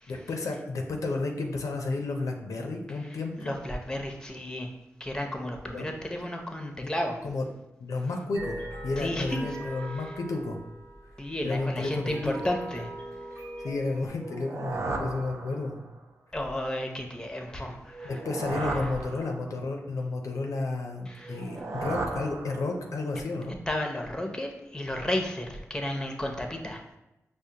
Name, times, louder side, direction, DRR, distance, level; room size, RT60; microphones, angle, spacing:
voice 1, 0.1-3.5 5.7-5.8 6.8-6.9 7.2-7.4 7.8-8.6 8.8-10.6 11.4-12.3 13.6-15.8 18.0-23.5, left 3 dB, 80° left, 2 dB, 0.4 m, -32 dB
voice 2, 3.4-4.7 5.0-7.2 9.0-9.5 11.2-12.9 16.3-18.2 18.6-18.8 21.1-21.4 23.7-26.8, left 1 dB, 15° left, 3 dB, 0.6 m, -33 dB
sound 1, 8.3-14.1, right 1 dB, 85° right, 1.0 m, -41 dB
sound 2, 14.1-16.0 17.9-19.8 21.2-23.1, right 3 dB, 60° right, 0.4 m, -35 dB
4.9 x 2.1 x 2.7 m, 0.96 s
cardioid pair, 50°, 5 cm